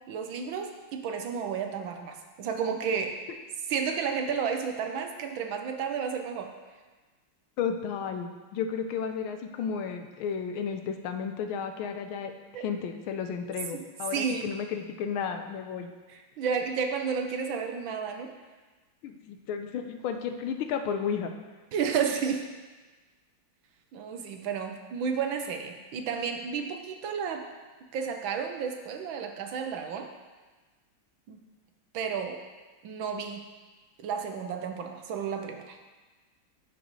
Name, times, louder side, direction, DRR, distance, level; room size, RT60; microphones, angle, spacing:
voice 1, 0.1-3.2 3.7-6.5 12.5-12.6 14.1-14.5 16.1-18.3 21.7-22.5 23.9-27.5 27.9-30.1 31.3-31.4 31.9-32.4 32.8-33.4 34.0-35.8, right 6 dB, 70° right, 4 dB, 1.4 m, -32 dB
voice 2, 7.6-12.3 12.6-15.9 19.0-21.3, left 7 dB, 80° left, 6 dB, 1.4 m, -33 dB
14.5 x 5.3 x 3.1 m, 1.3 s
omnidirectional pair, 2.4 m